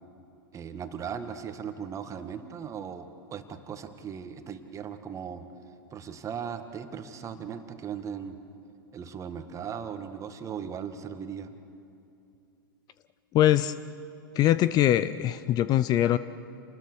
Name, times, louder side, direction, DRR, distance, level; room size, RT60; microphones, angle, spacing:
voice 1, 0.5-5.5 5.9-8.4 8.9-11.6, right 7 dB, 25° right, 8 dB, 1.7 m, -38 dB
voice 2, 13.3-13.7 14.4-16.2, left 12 dB, 35° left, 15 dB, 0.6 m, -22 dB
28.5 x 20.0 x 6.3 m, 2.7 s
hypercardioid pair, 105°, 12 cm